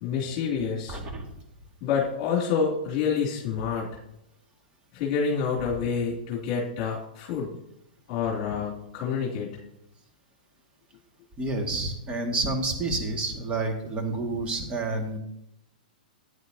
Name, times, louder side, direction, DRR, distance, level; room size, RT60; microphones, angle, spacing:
voice 1, 0.0-1.0 1.8-4.0 4.9-7.6 8.1-9.5, left 6 dB, 40° left, -4 dB, 2.7 m, -28 dB
voice 2, 0.9-1.3 11.4-15.2, right 2 dB, 20° right, 2 dB, 2.0 m, -29 dB
14.0 x 9.1 x 2.8 m, 0.82 s
hypercardioid pair, 115°, 5 cm